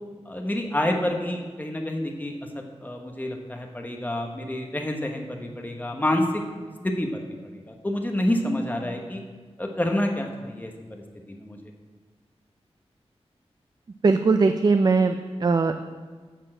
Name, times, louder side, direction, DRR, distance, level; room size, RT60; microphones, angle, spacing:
voice 1, 0.3-6.4 6.8-7.2 7.5-9.2 9.6-11.0 11.3-11.6, left 1 dB, 15° left, 2 dB, 1.1 m, -28 dB
voice 2, 14.0-15.8, right 4 dB, 40° right, 8 dB, 0.4 m, -20 dB
10.0 x 4.4 x 7.6 m, 1.5 s
wide cardioid pair, 110°, 11 cm